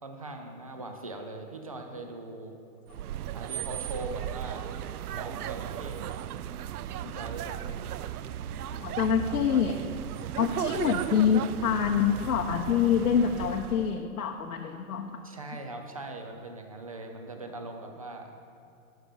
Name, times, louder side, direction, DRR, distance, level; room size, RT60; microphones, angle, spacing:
voice 1, 0.0-2.6 3.3-4.7 5.1-6.3 7.0-7.8 15.2-18.3, right 2 dB, 25° right, 4 dB, 0.4 m, -41 dB
sound 1, 2.9-14.0, right 11 dB, 80° right, 0.5 m, -36 dB
voice 2, 8.7-9.8 10.4-15.2, left 7 dB, 85° left, 3 dB, 0.8 m, -26 dB
13.5 x 5.9 x 5.0 m, 2.6 s
hypercardioid pair, 165°, 44 cm